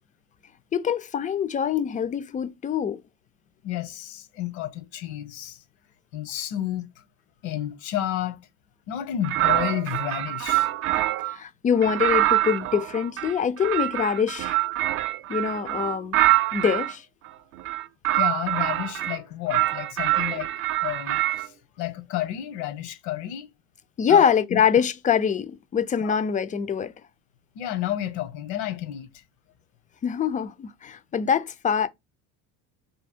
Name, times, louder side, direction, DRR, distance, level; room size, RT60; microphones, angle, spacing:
voice 1, 0.7-3.0 11.3-14.6 15.3-16.2 16.5-17.1 24.0-26.9 30.0-31.9, left 7 dB, 25° left, 0.4 m, -24 dB
voice 2, 3.6-5.6 6.1-7.0 7.4-8.4 8.9-10.7 18.1-20.5 20.8-23.5 24.1-24.6 26.0-26.2 27.5-29.1, left 12 dB, 80° left, 1.2 m, -31 dB
sound 1, 9.2-11.4 11.8-16.9 17.6-19.2 19.5-21.5, right 16 dB, 45° right, 0.4 m, -25 dB
3.4 x 2.7 x 4.3 m
supercardioid pair, 120°, 34 cm